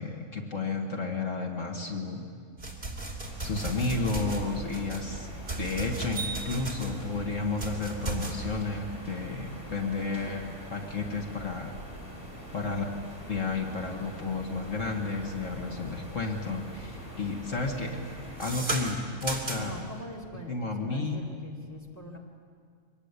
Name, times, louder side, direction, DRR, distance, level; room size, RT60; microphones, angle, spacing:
voice 1, 0.0-2.2 3.4-5.3 5.6-10.4 10.7-11.7 12.5-12.8 13.3-18.0 18.4-19.8 20.5-21.2, left 3 dB, 70° left, 2 dB, 2.2 m, -32 dB
sound 1, 2.6-15.9 16.3-16.7 17.0-19.9, right 2 dB, 40° right, 3.2 m, -37 dB
sound 2, 3.2-18.6, right 1 dB, 40° left, 4.5 m, -43 dB
voice 2, 10.0-10.6 12.6-12.7 19.5-22.2, left 1 dB, 10° left, -1 dB, 2.7 m, -44 dB
24.0 x 19.5 x 8.3 m, 2.1 s
omnidirectional pair, 1.4 m